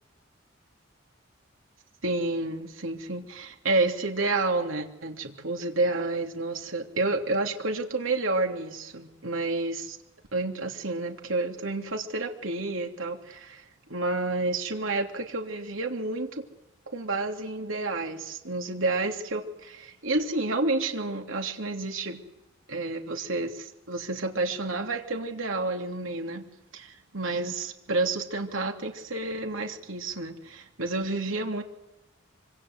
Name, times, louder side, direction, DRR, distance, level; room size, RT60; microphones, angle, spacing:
voice 1, 2.0-10.0 10.3-16.4 16.9-22.2 22.7-26.4 26.7-31.6, right 2 dB, 85° right, 3 dB, 3.1 m, -30 dB
26.0 x 25.5 x 8.1 m, 0.90 s
head